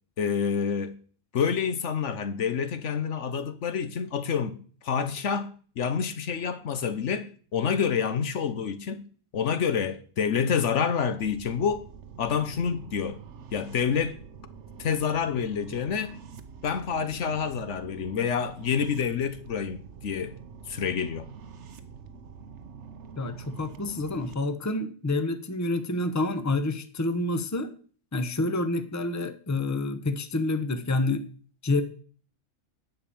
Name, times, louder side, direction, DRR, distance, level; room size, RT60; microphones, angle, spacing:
voice 1, 0.2-1.0 1.3-4.6 4.8-9.1 9.3-11.8 12.2-13.2 13.5-14.2 14.8-16.1 16.6-20.4 20.7-21.3, left 6 dB, 70° left, 1.2 m, -28 dB
sound 1, 11.2-24.3, right 6 dB, 65° right, 1.2 m, -46 dB
voice 2, 23.2-27.7 28.1-31.2 31.6-31.8, left 2 dB, 15° left, 0.8 m, -28 dB
10.5 x 5.4 x 8.5 m
omnidirectional pair, 1.3 m